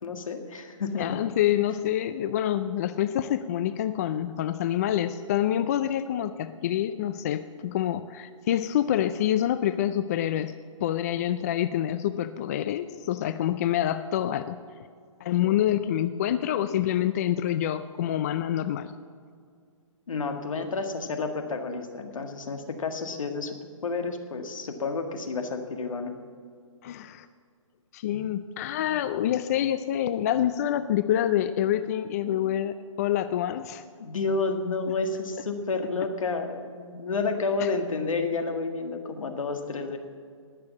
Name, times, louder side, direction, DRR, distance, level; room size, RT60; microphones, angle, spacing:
voice 1, 0.0-1.1 20.1-23.6 23.8-26.1 34.0-40.0, left 4 dB, 75° left, 5 dB, 1.8 m, -30 dB
voice 2, 1.0-10.5 10.8-14.6 15.2-18.9 26.8-27.3 27.9-33.8 37.6-37.7, left 11 dB, 30° left, 12 dB, 0.3 m, -27 dB
19.5 x 6.8 x 7.2 m, 2.1 s
hypercardioid pair, 150°, 17 cm